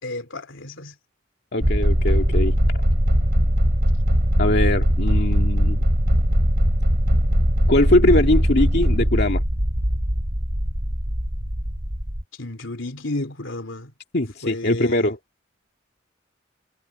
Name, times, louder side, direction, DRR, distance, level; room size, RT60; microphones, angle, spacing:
voice 1, 0.0-1.0 12.4-13.9 14.4-15.1, left 2 dB, 75° left, 3.4 m, -32 dB
voice 2, 1.5-2.6 4.4-5.8 7.7-9.4 14.1-15.2, left 1 dB, 55° left, 2.2 m, -21 dB
sound 1, 1.6-12.2, equal, 55° right, 6.7 m, -20 dB
head